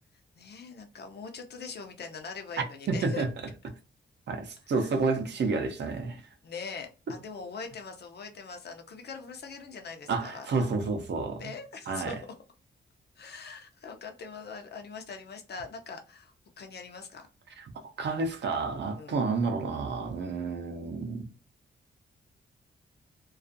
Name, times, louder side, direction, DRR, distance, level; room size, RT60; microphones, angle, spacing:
voice 1, 0.4-3.3 4.7-5.0 6.4-10.7 11.4-12.2 13.2-17.3 19.0-19.2, left 5 dB, 55° left, 0.6 m, -42 dB
voice 2, 2.9-3.3 4.3-6.2 10.1-11.4 11.9-12.1 18.0-21.3, right 4 dB, 60° right, 0.6 m, -30 dB
2.4 x 2.3 x 2.6 m
wide cardioid pair, 105°, 20 cm